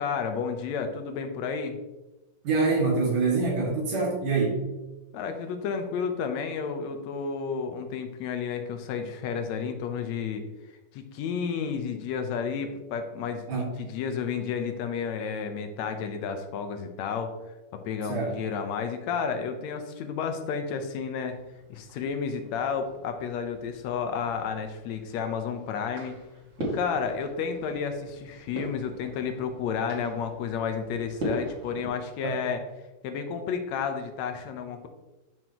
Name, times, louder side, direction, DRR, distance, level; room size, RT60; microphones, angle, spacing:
voice 1, 0.0-1.8 5.1-10.5 10.9-17.3 17.7-21.4 21.7-26.2 26.6-32.6 33.0-34.9, left 6 dB, 70° left, 6 dB, 1.9 m, -31 dB
voice 2, 2.4-4.6 13.5-13.7 18.0-18.4 32.2-32.4, right 4 dB, 85° right, -3 dB, 3.8 m, -25 dB
sound 1, 21.3-31.9, equal, 40° right, 2.6 m, -40 dB
11.0 x 6.1 x 3.0 m, 1.0 s
omnidirectional pair, 3.6 m